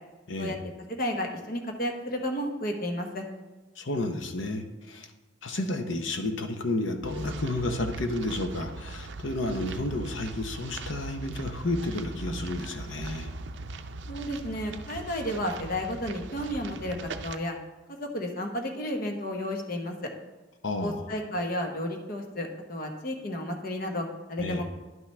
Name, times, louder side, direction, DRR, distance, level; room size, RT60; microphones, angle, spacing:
voice 1, 0.9-3.2 14.1-17.6 17.9-20.1 20.8-24.7, left 1 dB, 50° left, 3 dB, 1.1 m, -32 dB
voice 2, 3.8-5.1 5.4-13.3 20.6-21.0 24.4-24.6, left 2 dB, 85° left, 6 dB, 0.9 m, -31 dB
sound 1, 7.0-17.4, right 3 dB, 65° right, 0.5 m, -40 dB
10.5 x 5.9 x 3.3 m, 1.2 s
head